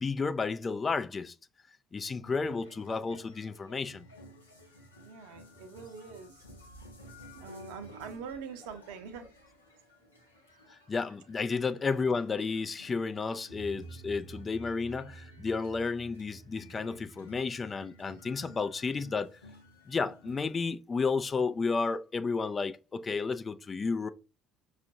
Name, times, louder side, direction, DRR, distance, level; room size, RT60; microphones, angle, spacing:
voice 1, 0.0-1.3 1.9-4.1 10.9-19.3 19.9-24.1, left 4 dB, 30° left, 0.3 m, -32 dB
sound 1, 2.4-20.5, right 1 dB, 85° left, 0.7 m, -52 dB
voice 2, 5.0-6.6 7.3-9.3, right 6 dB, 65° right, 0.7 m, -44 dB
5.7 x 2.4 x 2.8 m
figure-of-eight pair, 55°, 0 cm